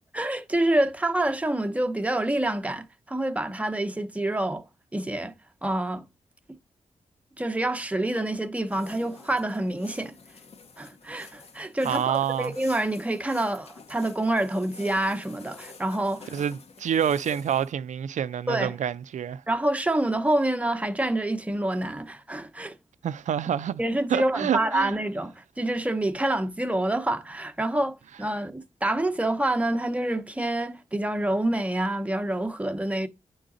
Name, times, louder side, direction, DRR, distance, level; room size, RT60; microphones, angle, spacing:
voice 1, 0.1-4.6 4.9-5.3 5.6-6.1 7.4-10.1 10.8-16.3 18.5-18.7 19.5-22.7 23.8-33.1, right 1 dB, 10° right, 0.8 m, -27 dB
sound 1, 8.7-17.7, left 4 dB, 55° left, 0.9 m, -48 dB
voice 2, 11.8-12.5 16.3-19.4 23.0-23.8 24.1-24.9, right 9 dB, 80° right, 0.5 m, -27 dB
9.0 x 3.9 x 3.9 m
cardioid pair, 90°, 12 cm